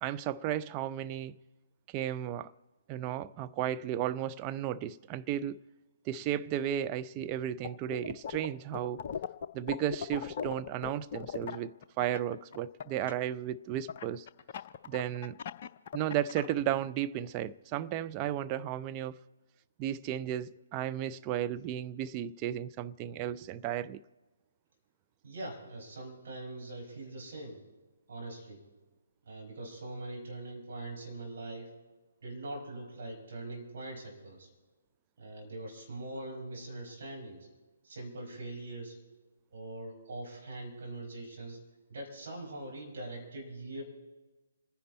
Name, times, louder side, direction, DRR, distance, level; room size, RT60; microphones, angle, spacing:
voice 1, 0.0-1.4 1.9-2.5 2.9-5.6 6.1-9.0 9.5-14.3 14.9-15.4 15.9-19.2 19.8-24.0, right 11 dB, 25° right, 0.4 m, -34 dB
sound 1, 7.6-8.5 8.7-13.1 13.9-16.5, left 7 dB, 40° left, 0.7 m, -38 dB
voice 2, 25.2-27.6 28.1-28.6 29.3-31.7 32.2-34.5 35.2-37.4 37.8-39.0 39.5-41.6 41.9-43.8, right 2 dB, 50° right, 5.4 m, -42 dB
27.5 x 10.5 x 4.2 m
figure-of-eight pair, 135°, 0 cm